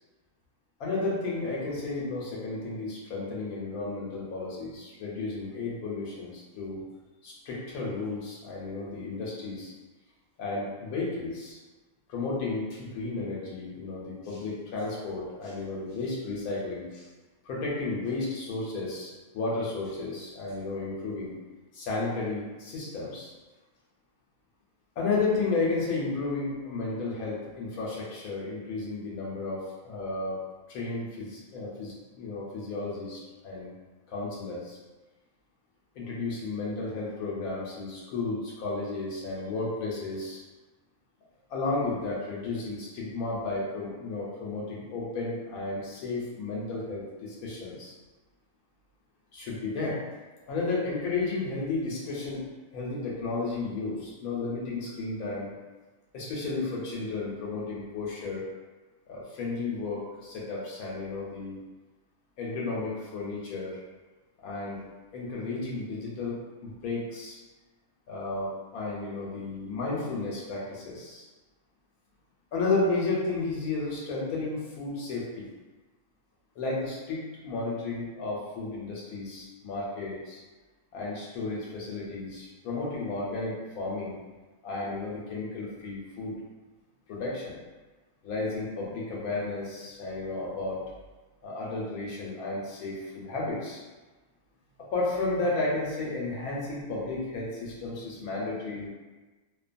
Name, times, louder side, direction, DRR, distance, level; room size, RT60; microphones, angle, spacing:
voice 1, 0.8-6.8 7.2-9.7 10.4-11.6 12.1-17.1 17.4-21.3 21.7-23.3 25.0-30.4 30.7-33.7 34.1-34.8 36.0-40.4 41.5-47.9 49.3-50.0 50.5-52.4 52.7-55.5 56.1-58.4 59.1-61.6 62.4-63.8 64.4-64.8 65.1-67.4 68.1-71.3 72.5-75.5 76.6-80.4 80.9-84.2 84.6-86.4 87.1-87.6 88.2-90.8 91.4-93.8 94.8-98.9, left 3 dB, 85° left, -5 dB, 1.1 m, -33 dB
2.6 x 2.2 x 2.5 m, 1.2 s
omnidirectional pair, 1.5 m